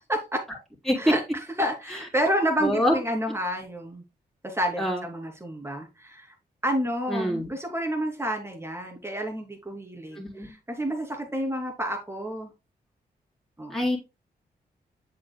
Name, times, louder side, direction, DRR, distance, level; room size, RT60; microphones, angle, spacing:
voice 1, 0.1-0.4 1.0-1.2 1.6-4.0 4.4-6.3 6.6-10.2 10.7-12.5 13.6-13.7, equal, 15° right, 3 dB, 2.8 m, -29 dB
voice 2, 2.6-3.0 4.8-5.1 7.1-7.5 10.1-10.5 13.7-14.0, equal, ahead, -3 dB, 3.7 m, -25 dB
7.4 x 7.0 x 2.2 m, 0.27 s
cardioid pair, 50°, 18 cm